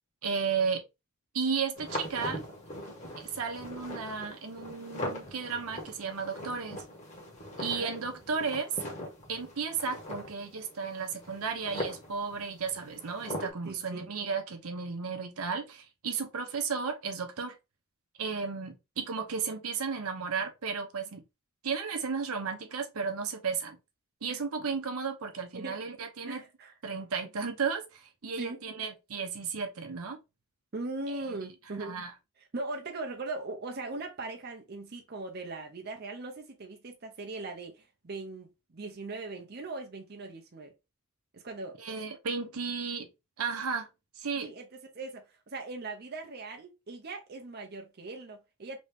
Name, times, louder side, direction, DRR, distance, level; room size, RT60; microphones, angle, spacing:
voice 1, 0.2-0.8 1.3-2.4 3.2-6.8 7.6-8.7 9.3-17.6 18.2-21.2 21.6-23.8 24.2-26.4 26.8-30.2 31.1-31.5 31.8-32.1 41.8-43.1 43.4-43.9 44.2-44.5, right 5 dB, 80° right, 0.7 m, -34 dB
sound 1, 1.8-13.5, left 1 dB, 35° left, 1.2 m, -41 dB
voice 2, 7.6-7.9 13.6-14.1 24.3-24.4 25.5-25.8 26.3-26.7 28.4-28.6 30.7-32.0 32.5-40.7 41.3-41.8 44.4-44.7 44.9-48.8, right 3 dB, 45° right, 0.6 m, -40 dB
3.0 x 2.7 x 3.3 m
head